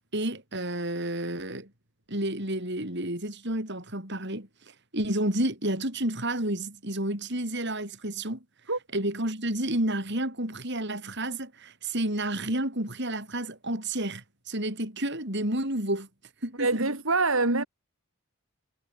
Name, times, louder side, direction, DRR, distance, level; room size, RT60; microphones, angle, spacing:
voice 1, 0.1-1.7 2.1-4.5 4.9-8.4 8.9-16.1 16.4-16.9, right 1 dB, 50° right, 7.8 m, -30 dB
voice 2, 16.6-17.7, right 3 dB, 70° right, 3.7 m, -25 dB
head